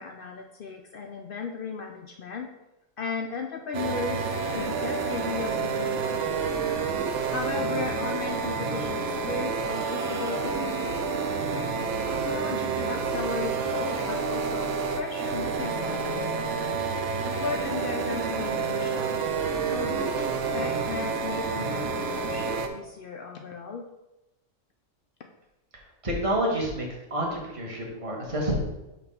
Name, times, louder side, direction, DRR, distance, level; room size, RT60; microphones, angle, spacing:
voice 1, 0.0-2.5 3.0-6.4 7.3-11.4 12.1-14.7 15.0-16.3 17.2-19.2 19.7-23.9, left 5 dB, 70° left, 3 dB, 0.5 m, -36 dB
sound 1, 3.7-22.7, right 5 dB, 65° right, 0.9 m, -29 dB
voice 2, 26.0-28.6, right 1 dB, 25° right, -2 dB, 1.3 m, -28 dB
6.0 x 3.1 x 5.4 m, 0.98 s
omnidirectional pair, 1.4 m